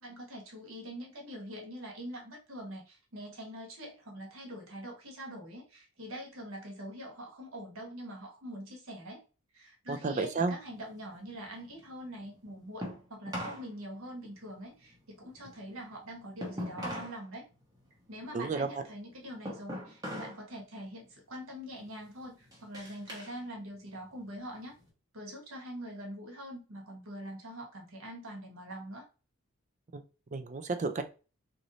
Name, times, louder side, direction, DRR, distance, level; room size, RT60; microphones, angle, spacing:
voice 1, 0.0-9.2 9.5-17.5 18.1-24.8 25.1-29.1, equal, 75° right, 1 dB, 1.2 m, -44 dB
voice 2, 9.9-10.5 18.3-18.8 29.9-30.0 30.3-31.0, right 4 dB, 35° right, 9 dB, 0.4 m, -32 dB
sound 1, 10.6-13.7 14.0-17.2 17.6-20.4 20.8-21.2 21.7-23.4 23.7-24.9, equal, 20° right, 1.1 m, -43 dB
3.0 x 2.7 x 3.9 m, 0.33 s
head